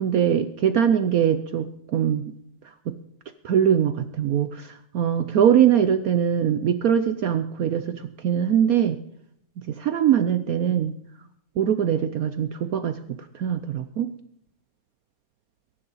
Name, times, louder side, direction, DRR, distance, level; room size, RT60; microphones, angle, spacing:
voice 1, 0.0-2.3 2.9-3.0 3.4-9.0 9.7-10.9 11.6-13.0 13.3-14.1, right 9 dB, 65° right, 11 dB, 1.0 m, -22 dB
22.5 x 11.0 x 4.1 m, 0.73 s
omnidirectional pair, 1.9 m